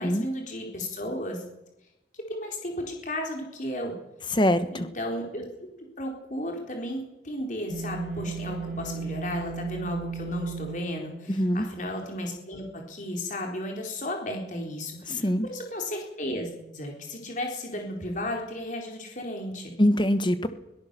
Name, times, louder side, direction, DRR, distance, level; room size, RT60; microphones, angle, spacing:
voice 1, 0.0-1.4 2.1-3.9 4.7-5.4 6.0-19.7, left 1 dB, 40° left, 1 dB, 4.1 m, -34 dB
sound 1, 7.7-11.9, right 5 dB, 50° right, 5.3 m, -36 dB
voice 2, 11.3-11.6 15.1-15.5 19.8-20.5, equal, 25° left, 11 dB, 1.3 m, -23 dB
22.5 x 17.5 x 6.9 m, 0.95 s
head